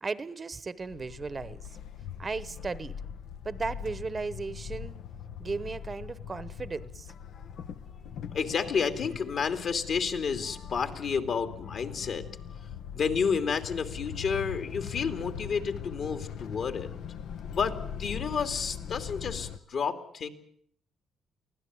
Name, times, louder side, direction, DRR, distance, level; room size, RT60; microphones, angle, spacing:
voice 1, 0.0-1.7 2.2-3.0 3.4-5.0 5.4-7.1, right 4 dB, 30° right, 1.0 m, -36 dB
sound 1, 0.8-19.6, left 8 dB, 75° left, 1.0 m, -41 dB
voice 2, 8.3-12.3 12.9-16.9 17.5-20.3, left 6 dB, 60° left, 2.6 m, -30 dB
24.0 x 16.0 x 9.5 m
cardioid pair, 90°, 0 cm